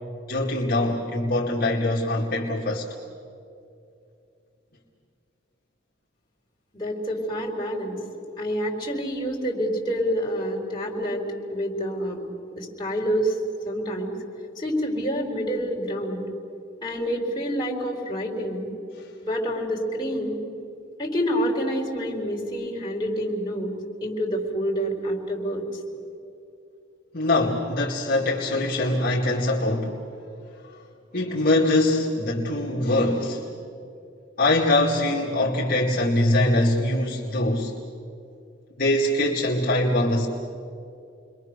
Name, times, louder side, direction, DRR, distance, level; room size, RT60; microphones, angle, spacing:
voice 1, 0.3-2.9 27.1-30.0 31.1-33.5 34.4-37.8 38.8-40.3, left 1 dB, 50° left, -4 dB, 2.3 m, -23 dB
voice 2, 6.7-8.0 8.4-11.2 11.5-12.3 12.6-13.4 13.6-14.1 14.6-16.2 16.8-18.7 19.2-20.4 21.0-23.7 24.0-25.8, equal, 20° left, -2 dB, 4.2 m, -27 dB
30.0 x 22.5 x 6.7 m, 2.6 s
head